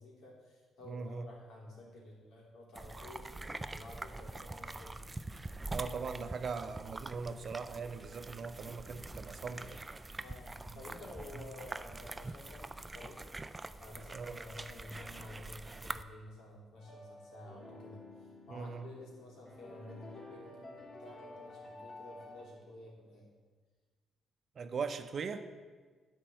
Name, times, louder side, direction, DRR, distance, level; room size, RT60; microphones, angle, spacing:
voice 1, 0.0-5.1 10.2-13.2 13.8-23.3, left 2 dB, 75° left, -3 dB, 3.1 m, -51 dB
voice 2, 0.9-1.3 5.7-9.8 11.3-11.4 14.1-14.4 18.5-18.9 24.6-25.4, right 5 dB, 50° right, 9 dB, 0.7 m, -40 dB
sound 1, 2.8-16.0, right 2 dB, 20° right, 0.4 m, -45 dB
sound 2, 16.8-22.4, left 2 dB, 50° left, 1.9 m, -52 dB
10.0 x 4.5 x 7.7 m, 1.4 s
cardioid pair, 90°, 0 cm